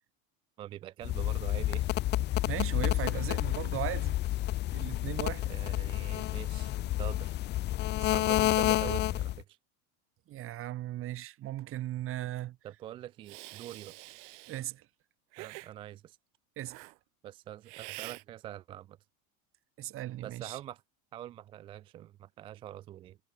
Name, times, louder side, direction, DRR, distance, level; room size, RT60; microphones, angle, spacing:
voice 1, 0.6-2.0 5.5-7.4 8.0-9.6 12.6-13.9 15.4-16.2 17.2-19.0 20.2-20.8 21.1-23.2, right 12 dB, 15° right, 0.3 m, -44 dB
sound 1, 1.0-9.4, left 15 dB, 25° left, 0.8 m, -30 dB
voice 2, 2.5-4.2 4.7-5.5 10.3-12.6 14.5-14.9 16.6-16.8 19.8-20.6, right 14 dB, 30° right, 2.5 m, -37 dB
Hiss, 13.2-14.6 15.3-15.7 16.7-16.9 17.7-18.2, right 32 dB, 55° right, 2.0 m, -46 dB
supercardioid pair, 165°, 44 cm